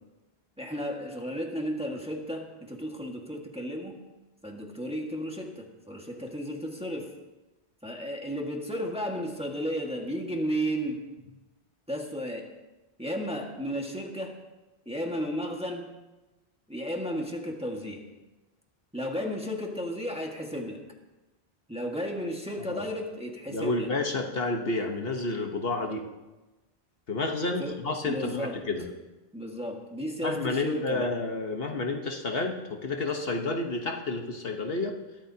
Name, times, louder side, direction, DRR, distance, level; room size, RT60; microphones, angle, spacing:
voice 1, 0.6-4.0 4.4-7.1 7.8-11.0 11.9-12.5 13.0-14.4 14.8-15.9 16.7-18.0 18.9-20.8 21.7-23.9 27.6-27.8 28.0-28.6 29.3-31.1, equal, 5° right, 0 dB, 1.6 m, -33 dB
voice 2, 23.5-26.1 27.1-28.8 30.2-35.0, left 3 dB, 65° left, 3 dB, 1.4 m, -30 dB
21.5 x 14.0 x 2.8 m, 1.1 s
omnidirectional pair, 1.1 m